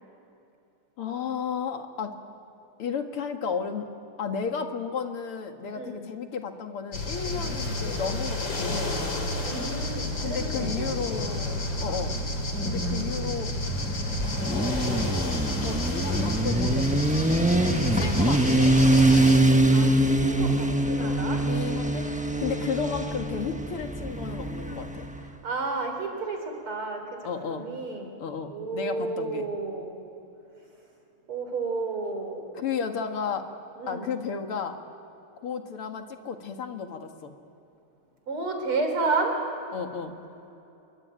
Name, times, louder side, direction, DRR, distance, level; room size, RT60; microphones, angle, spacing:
voice 1, 1.0-2.2 2.8-3.9 4.2-8.9 10.2-12.2 12.6-13.5 14.5-14.9 15.6-17.0 17.9-18.8 20.9-25.1 27.2-27.7 28.2-29.5 32.6-33.5 33.9-34.8 35.4-37.3 39.7-40.2, left 6 dB, 90° left, 5 dB, 2.7 m, -33 dB
voice 2, 5.7-6.1 9.4-10.5 10.8-11.2 11.8-12.1 17.5-18.3 19.7-21.4 23.3-23.6 25.4-28.2 28.5-30.0 31.3-32.4 33.8-34.2 38.3-39.4, right 3 dB, 75° right, 4 dB, 4.8 m, -32 dB
sound 1, 6.9-19.5, left 1 dB, 60° left, 4.1 m, -30 dB
Motorcycle, 13.5-25.2, right 1 dB, 5° right, 0.8 m, -24 dB
26.5 x 23.5 x 9.3 m, 2.9 s
omnidirectional pair, 2.4 m